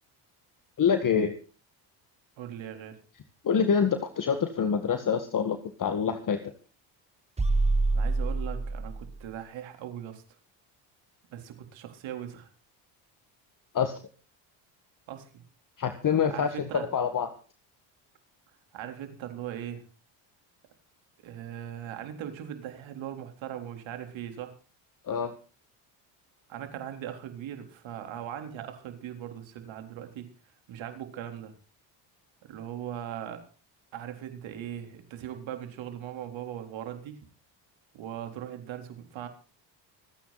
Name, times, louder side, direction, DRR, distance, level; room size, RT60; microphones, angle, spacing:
voice 1, 0.8-1.3 3.4-6.5 13.7-14.0 15.8-17.3 25.1-25.3, left 7 dB, 40° left, 8 dB, 1.9 m, -26 dB
voice 2, 2.4-3.0 7.9-10.2 11.3-12.5 15.1-15.4 16.3-16.9 18.7-19.8 21.2-24.5 26.5-30.3 30.7-31.5 32.4-33.5 33.9-37.2 37.9-39.3, right 10 dB, 70° right, 6 dB, 3.9 m, -39 dB
sound 1, 7.4-9.2, right 3 dB, 15° right, 1.5 m, -26 dB
26.0 x 9.7 x 4.2 m, 0.37 s
supercardioid pair, 90°, 48 cm